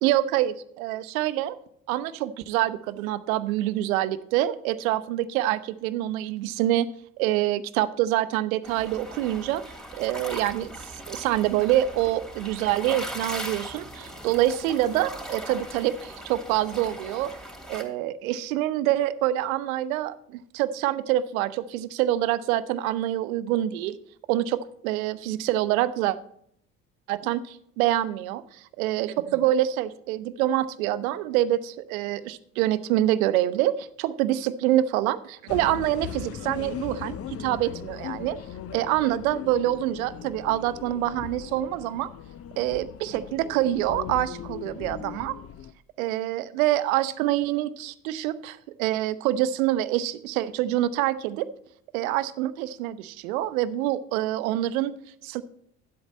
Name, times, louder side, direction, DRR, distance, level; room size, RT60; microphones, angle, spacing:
voice 1, 0.0-1.6 1.9-6.9 7.2-9.6 9.9-10.7 11.1-17.3 17.7-24.0 24.3-26.2 27.1-27.4 27.8-28.4 28.8-38.4 38.7-42.1 42.6-45.4 46.0-51.5 51.9-54.9 55.2-55.4, right 13 dB, 80° right, 15 dB, 0.7 m, -26 dB
sound 1, 8.6-17.8, right 1 dB, ahead, 2.8 m, -39 dB
sound 2, 35.5-45.7, left 9 dB, 35° left, 0.6 m, -39 dB
11.0 x 8.0 x 4.2 m, 0.69 s
hypercardioid pair, 55°, 42 cm